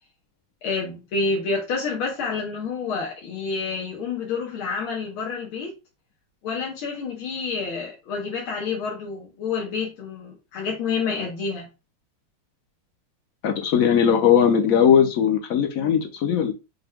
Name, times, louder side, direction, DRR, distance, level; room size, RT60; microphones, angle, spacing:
voice 1, 0.6-5.8 6.4-11.7, left 4 dB, 85° left, 1.8 m, -28 dB
voice 2, 13.4-16.5, left 8 dB, 60° left, 0.9 m, -19 dB
5.9 x 2.2 x 3.5 m
omnidirectional pair, 2.2 m